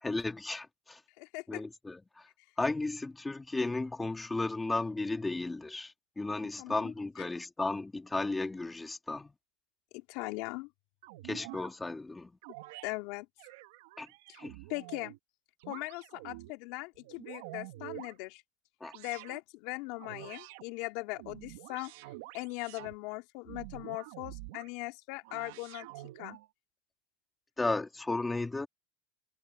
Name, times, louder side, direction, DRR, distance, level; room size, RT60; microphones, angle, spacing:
voice 1, 0.0-1.0 1.5-2.3 2.6-9.3 11.2-12.4 14.0-14.1 14.4-14.5 18.8-18.9 27.6-28.7, left 2 dB, 10° left, 2.4 m, -34 dB
voice 2, 1.2-1.6 6.6-6.9 9.9-10.7 12.8-13.2 14.3-14.4 14.7-15.1 15.7-18.4 18.9-21.9 22.3-25.9 26.2-26.4, left 24 dB, 60° left, 3.5 m, -40 dB
sound 1, 11.0-11.7 12.4-12.9 13.4-15.2 15.6-16.5 17.0-18.2 18.8-19.4 20.0-20.6 21.1-23.0 23.4-24.7 25.2-26.5, right 19 dB, 70° right, 1.9 m, -47 dB
supercardioid pair, 145°, 0 cm